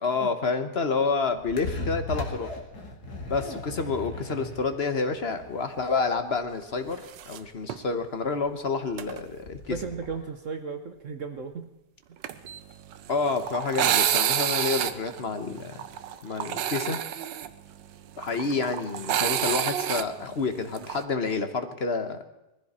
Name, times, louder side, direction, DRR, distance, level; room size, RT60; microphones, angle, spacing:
voice 1, 0.0-2.5 3.3-9.8 13.1-15.8 16.2-17.0 18.2-22.2, left 4 dB, 40° left, 8 dB, 1.2 m, -29 dB
sound 1, 1.0-10.2, left 2 dB, 60° left, 2.6 m, -38 dB
sound 2, 7.1-7.4 7.7-7.8 9.0-9.2 12.2-21.0, right 10 dB, 85° right, 1.5 m, -29 dB
voice 2, 9.7-11.7, right 5 dB, 50° right, 6 dB, 1.2 m, -35 dB
20.5 x 15.0 x 4.3 m, 0.92 s
omnidirectional pair, 1.9 m